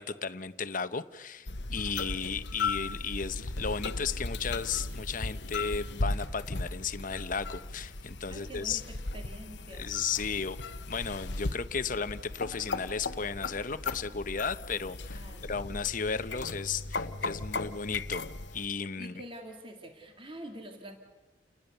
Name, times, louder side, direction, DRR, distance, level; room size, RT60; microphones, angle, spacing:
voice 1, 0.0-8.8 9.7-10.6 10.9-15.2 15.5-18.2 18.5-19.1, left 5 dB, 45° left, 12 dB, 1.0 m, -34 dB
sound 1, 1.5-18.7, left 3 dB, 65° left, 1.1 m, -37 dB
voice 2, 8.3-9.9 15.2-15.6 19.0-21.0, right 1 dB, 30° right, 3 dB, 2.3 m, -46 dB
29.5 x 19.5 x 6.8 m, 1.2 s
head